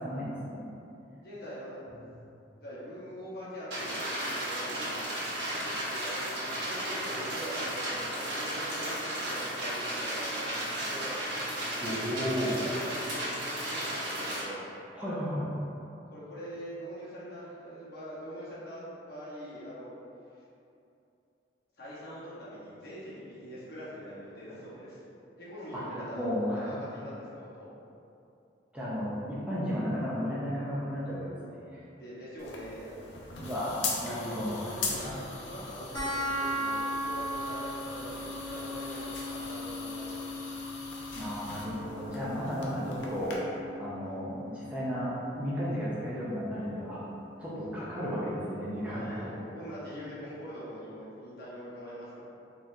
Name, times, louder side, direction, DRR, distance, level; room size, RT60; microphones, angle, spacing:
voice 1, 0.0-0.6 11.8-12.6 14.9-15.5 25.7-26.8 28.7-31.8 33.4-34.8 41.1-47.0 47.4-49.3, equal, 5° right, -9 dB, 0.5 m, -34 dB
voice 2, 1.2-2.0 2.6-4.7 5.8-11.2 11.8-14.7 16.1-19.9 21.8-25.0 25.4-26.3 26.5-27.7 31.9-33.1 34.1-40.2 44.0-44.2 48.8-52.2, equal, 55° left, -9 dB, 1.0 m, -43 dB
sound 1, 3.7-14.4, right 1 dB, 70° right, 1.2 m, -34 dB
sound 2, 32.4-43.4, left 3 dB, 85° left, 0.5 m, -40 dB
sound 3, 35.9-46.9, equal, 20° left, 1.3 m, -38 dB
3.9 x 3.0 x 2.6 m, 2.7 s
head